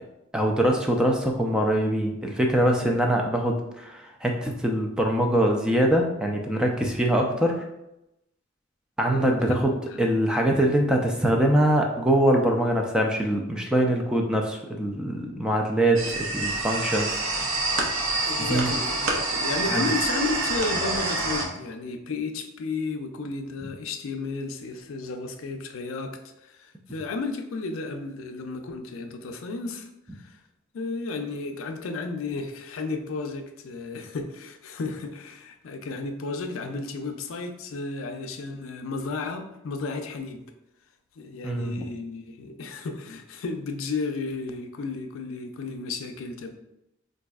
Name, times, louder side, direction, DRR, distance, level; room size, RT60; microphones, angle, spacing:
voice 1, 0.3-7.7 9.0-9.7 10.0-17.2 18.5-18.7 19.7-19.9 41.4-41.7, right 1 dB, 5° right, 1 dB, 0.3 m, -23 dB
sound 1, 16.0-21.5, right 2 dB, 75° right, 0.6 m, -27 dB
voice 2, 18.3-30.4 30.7-40.5 41.2-46.5, left 3 dB, 80° left, 6 dB, 0.4 m, -33 dB
4.0 x 2.6 x 2.3 m, 0.88 s
head